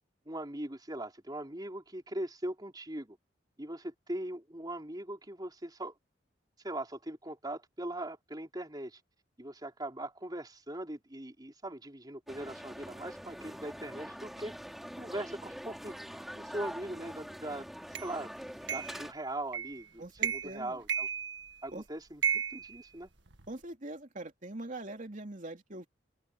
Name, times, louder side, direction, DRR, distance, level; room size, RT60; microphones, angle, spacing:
voice 1, 0.3-3.2 3.6-5.9 6.6-9.0 9.4-14.6 15.0-17.7 18.0-18.3 18.7-21.1 21.6-23.1, right 1 dB, 20° right, 3.9 m, -40 dB
sound 1, 12.3-19.1, equal, ahead, 4.9 m, -44 dB
sound 2, 18.0-18.1 18.7-19.0 19.5-19.8 20.2-20.6 20.9-21.7 22.2-23.5, right 8 dB, 70° right, 2.1 m, -34 dB
voice 2, 20.0-20.8 21.7-21.8 23.5-25.9, right 2 dB, 45° right, 3.1 m, -42 dB
head